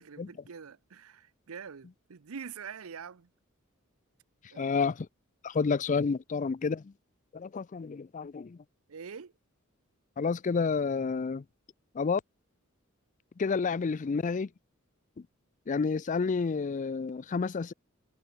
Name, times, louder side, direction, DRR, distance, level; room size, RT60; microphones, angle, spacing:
voice 1, 0.0-3.3 4.5-4.8 8.9-9.3, right 6 dB, 80° right, 0.7 m, -45 dB
voice 2, 4.6-5.1 5.4-6.9 7.3-8.6 10.2-11.4 12.0-12.2 13.4-14.5 15.7-17.7, left 5 dB, 35° left, 0.4 m, -30 dB
head